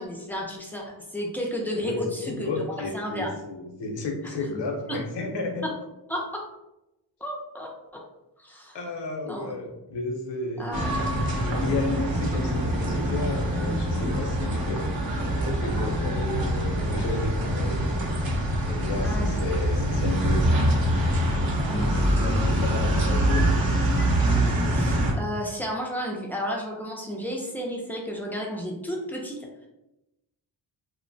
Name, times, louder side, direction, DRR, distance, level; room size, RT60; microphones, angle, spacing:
voice 1, 0.0-2.5 2.9-3.3 4.2-4.3 4.9-5.0 5.6-5.7 6.1-6.4 7.2-8.0 8.4-8.8 9.3-9.7 10.6-11.1 19.0-19.4 22.4-22.6 24.7-29.7, equal, 5° left, -1 dB, 0.4 m, -32 dB
voice 2, 1.7-5.7 8.7-14.9 15.3-17.9 18.6-20.7 21.6-23.5, left 2 dB, 70° left, 2 dB, 0.7 m, -32 dB
sound 1, 10.7-25.1, right 1 dB, 50° right, 0.7 m, -24 dB
2.8 x 2.1 x 2.6 m, 0.94 s
wide cardioid pair, 105°, 44 cm